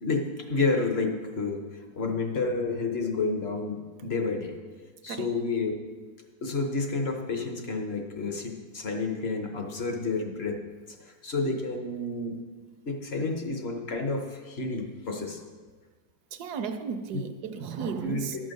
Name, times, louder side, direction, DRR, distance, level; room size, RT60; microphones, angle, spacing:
voice 1, 0.0-1.6 2.0-4.6 5.0-5.7 6.4-10.6 11.2-12.4 12.9-15.4 18.0-18.3, left 3 dB, 45° left, 3 dB, 1.0 m, -30 dB
voice 2, 16.3-18.4, right 6 dB, 70° right, 8 dB, 1.1 m, -34 dB
12.0 x 6.4 x 5.2 m, 1.5 s
omnidirectional pair, 1.9 m